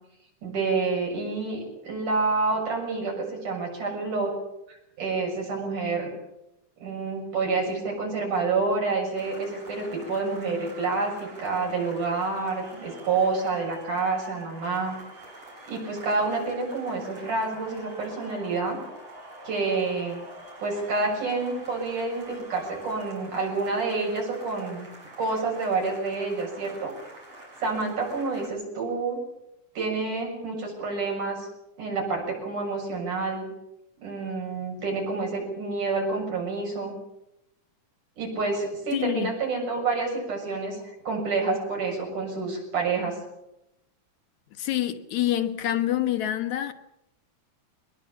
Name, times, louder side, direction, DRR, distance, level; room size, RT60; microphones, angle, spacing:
voice 1, 0.4-4.4 4.7-6.1 6.8-15.0 15.7-18.8 19.4-20.2 20.6-24.9 25.2-26.9 27.6-29.2 29.7-31.5 31.8-33.5 34.0-37.0 38.2-43.2, right 3 dB, 75° right, 8.5 m, -28 dB
sound 1, 9.1-28.5, right 2 dB, 50° right, 7.6 m, -46 dB
voice 2, 38.9-39.3 44.6-46.7, left 12 dB, 70° left, 2.5 m, -26 dB
23.0 x 20.5 x 7.3 m
omnidirectional pair, 3.6 m